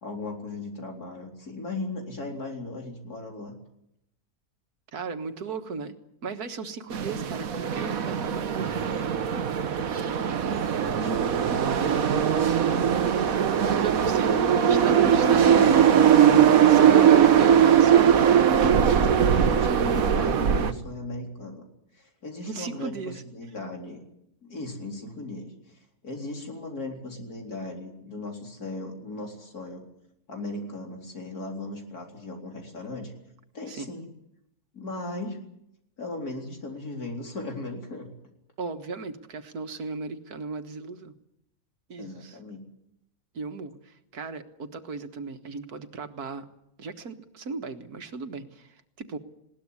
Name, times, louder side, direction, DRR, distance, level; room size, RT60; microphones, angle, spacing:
voice 1, 0.0-3.5 10.8-11.3 11.8-13.0 14.3-14.7 15.1-16.2 16.6-17.5 18.6-19.1 19.4-21.6 21.9-24.0 24.4-29.8 30.3-33.1 33.5-34.1 34.7-35.4 36.0-38.1 42.0-42.7, left 2 dB, 85° left, 2 dB, 4.5 m, -37 dB
voice 2, 4.9-5.9 6.2-8.8 13.7-15.9 16.7-18.5 22.5-23.2 33.7-33.9 38.6-41.1 41.9-42.4 43.3-46.5 46.8-49.2, right 4 dB, 85° right, 8 dB, 2.0 m, -36 dB
sound 1, 6.9-20.7, right 8 dB, 65° right, 1.5 m, -20 dB
20.5 x 18.5 x 9.7 m, 0.81 s
omnidirectional pair, 1.6 m